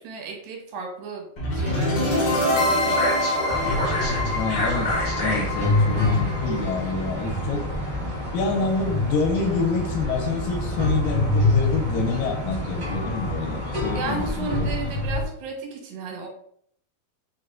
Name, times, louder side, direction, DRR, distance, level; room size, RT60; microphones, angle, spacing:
voice 1, 0.0-2.7 13.9-16.3, right 4 dB, 85° right, 1 dB, 2.7 m, -34 dB
sound 1, 1.4-7.4, left 1 dB, 65° left, 1.0 m, -24 dB
sound 2, 3.5-15.3, left 2 dB, 50° right, 0.5 m, -26 dB
voice 2, 4.3-7.7 8.3-14.7, left 4 dB, 80° left, 2 dB, 2.2 m, -27 dB
5.4 x 2.2 x 3.7 m, 0.66 s
omnidirectional pair, 3.9 m